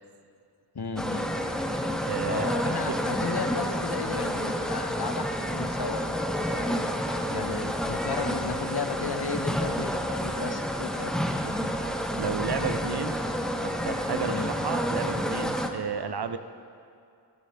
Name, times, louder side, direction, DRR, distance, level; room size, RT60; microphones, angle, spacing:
voice 1, 0.7-1.3 2.2-6.3 6.5-6.7 7.3-11.1 14.3-14.5, left 4 dB, 65° left, 6 dB, 1.0 m, -34 dB
sound 1, 1.0-15.7, equal, ahead, 0.8 m, -29 dB
voice 2, 2.1-3.0 7.5-7.7 11.4-13.2 13.6-16.4, right 6 dB, 65° right, 10 dB, 0.7 m, -33 dB
15.5 x 12.5 x 3.5 m, 2.4 s
wide cardioid pair, 45°, 42 cm